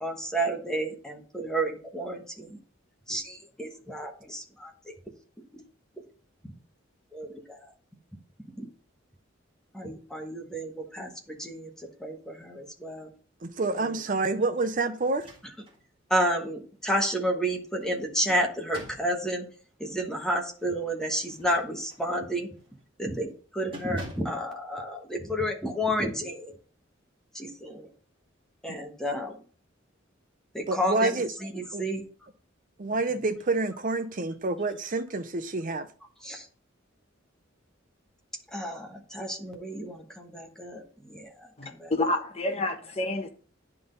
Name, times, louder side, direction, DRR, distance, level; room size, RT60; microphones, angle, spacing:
voice 1, 0.0-2.6 3.1-4.9 5.5-5.6 6.4-6.5 7.1-7.7 8.6-8.7 9.7-13.1 13.7-13.9 16.1-19.5 19.8-22.5 23.0-26.6 27.3-27.9 28.6-29.4 30.5-32.1 32.9-33.4 36.2-36.5 38.5-41.9, equal, 5° left, 1.2 m, -31 dB
voice 2, 13.4-15.3 30.7-31.3 31.7-31.8 32.8-35.9, right 3 dB, 45° right, 0.7 m, -28 dB
sound 1, 15.1-15.8 16.3-16.4 17.8-19.2 21.2-22.1 22.6-22.8 23.1-23.4 23.7-24.4, equal, 25° right, 1.7 m, -46 dB
voice 3, 41.6-43.3, left 2 dB, 30° left, 1.0 m, -29 dB
10.5 x 3.8 x 3.9 m
head